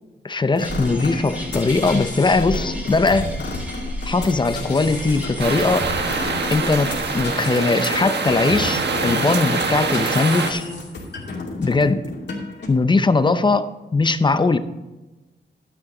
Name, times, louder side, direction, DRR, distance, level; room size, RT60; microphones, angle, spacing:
voice 1, 0.2-3.3 4.0-5.9 6.5-10.6 11.6-12.0 12.7-14.6, left 3 dB, 25° left, 12 dB, 0.6 m, -20 dB
sound 1, 0.5-12.7, left 3 dB, 60° left, 2.7 m, -32 dB
sound 2, 0.6-7.2, equal, 5° right, 2.6 m, -33 dB
sound 3, 5.4-10.5, right 4 dB, 60° right, 1.4 m, -24 dB
12.0 x 9.7 x 3.8 m, 1.1 s
wide cardioid pair, 155°, 20 cm